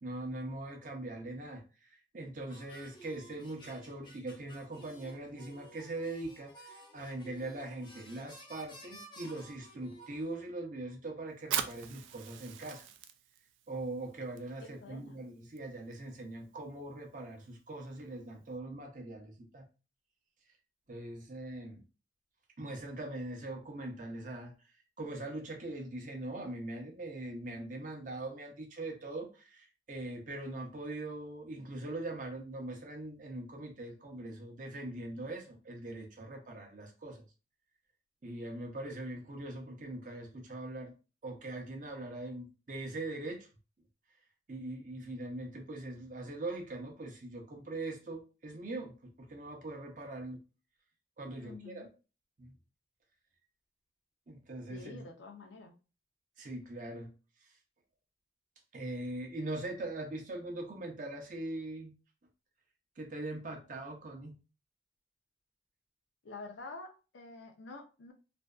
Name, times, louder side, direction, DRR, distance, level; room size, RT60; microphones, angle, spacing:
voice 1, 0.0-12.9 13.7-19.7 20.9-21.8 22.6-24.5 25.0-37.2 38.2-41.0 41.2-43.5 44.5-50.4 51.2-51.9 52.4-52.5 54.3-55.1 56.4-57.1 57.4-57.5 58.7-61.9 63.0-64.3, right 2 dB, 45° right, 2 dB, 0.6 m, -41 dB
sound 1, 2.5-10.4, right 1 dB, 25° left, 0.5 m, -54 dB
Fire, 11.4-18.6, right 9 dB, 85° right, 0.3 m, -43 dB
voice 2, 14.6-15.2 51.4-51.9 54.7-55.7 66.2-68.1, left 3 dB, 80° left, 5 dB, 0.5 m, -48 dB
2.5 x 2.2 x 2.3 m, 0.33 s
head